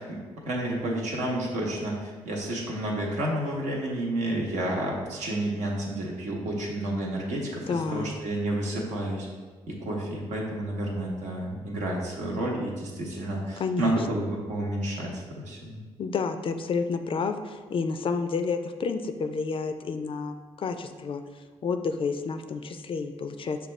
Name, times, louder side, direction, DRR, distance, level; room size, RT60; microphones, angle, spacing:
voice 1, 0.0-9.3 9.7-15.8, right 1 dB, 75° right, -2 dB, 0.9 m, -30 dB
voice 2, 7.7-8.1 13.6-14.0 16.0-23.6, left 5 dB, 45° left, 8 dB, 0.4 m, -30 dB
5.8 x 2.3 x 3.1 m, 1.4 s
supercardioid pair, 55°, 12 cm